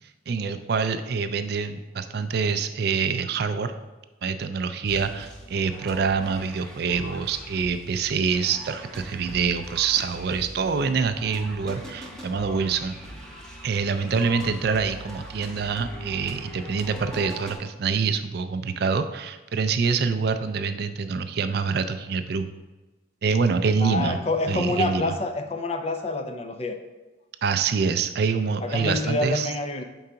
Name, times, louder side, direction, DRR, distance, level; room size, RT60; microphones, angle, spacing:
voice 1, 0.3-3.7 4.2-12.9 13.6-22.5 23.2-24.2 24.5-25.1 27.4-29.5, right 5 dB, 55° right, 10 dB, 0.3 m, -26 dB
sound 1, 4.9-17.5, right 1 dB, 5° left, 0.7 m, -41 dB
voice 2, 23.8-26.7 28.6-29.8, left 2 dB, 30° left, 6 dB, 0.4 m, -27 dB
4.7 x 3.8 x 5.6 m, 1.1 s
head